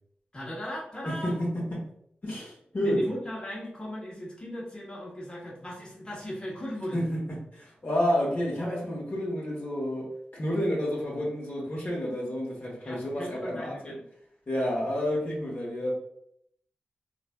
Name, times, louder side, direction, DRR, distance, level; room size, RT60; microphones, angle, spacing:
voice 1, 0.3-1.4 2.8-7.0 12.8-14.0, equal, 25° left, -4 dB, 1.1 m, -37 dB
voice 2, 1.0-1.8 2.2-3.0 6.9-7.2 7.5-13.9 14.5-15.9, equal, 50° left, -4 dB, 1.0 m, -30 dB
3.1 x 2.4 x 2.3 m, 0.71 s
cardioid pair, 45°, 4 cm